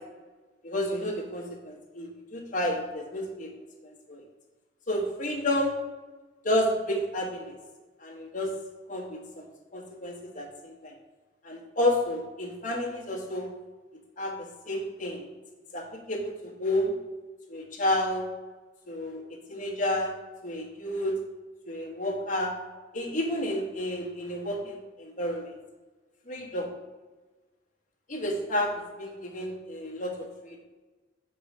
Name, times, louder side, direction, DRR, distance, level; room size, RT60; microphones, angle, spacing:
voice 1, 0.6-3.5 3.8-4.2 4.9-5.7 6.4-7.5 8.0-8.5 8.9-9.4 9.7-10.9 11.4-13.5 14.2-14.3 14.7-15.2 15.7-16.9 17.5-18.3 18.9-19.2 19.5-20.1 20.4-21.1 21.6-22.5 22.9-25.5 26.3-26.7 28.1-30.6, left 1 dB, 45° left, -2 dB, 1.2 m, -30 dB
5.8 x 3.1 x 5.4 m, 1.3 s
head